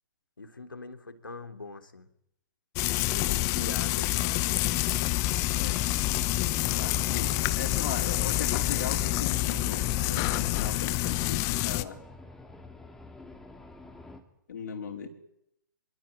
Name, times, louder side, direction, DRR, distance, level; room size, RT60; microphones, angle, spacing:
voice 1, 0.4-2.1 3.1-4.5, left 3 dB, 80° left, 7 dB, 3.4 m, -42 dB
Frying (food), 2.8-11.8, left 18 dB, 30° left, 1.2 m, -27 dB
sound 1, 4.6-14.2, left 2 dB, 5° left, 3.2 m, -48 dB
sound 2, 5.2-11.3, right 9 dB, 40° right, 3.9 m, -50 dB
voice 2, 5.5-5.9 6.8-12.0 14.5-15.1, left 6 dB, 60° left, 1 dB, 4.9 m, -38 dB
25.0 x 23.5 x 9.3 m, 0.77 s
figure-of-eight pair, 120°, 11 cm